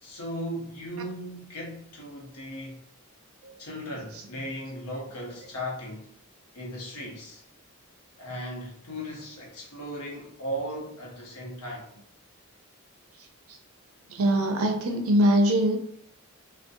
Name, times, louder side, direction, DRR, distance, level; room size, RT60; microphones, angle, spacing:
voice 1, 0.0-2.8 3.6-6.1 6.5-7.4 8.2-11.9, equal, 90° left, -2 dB, 0.8 m, -37 dB
voice 2, 14.1-15.8, right 1 dB, 70° right, 4 dB, 0.5 m, -22 dB
2.5 x 2.1 x 2.5 m, 0.69 s
head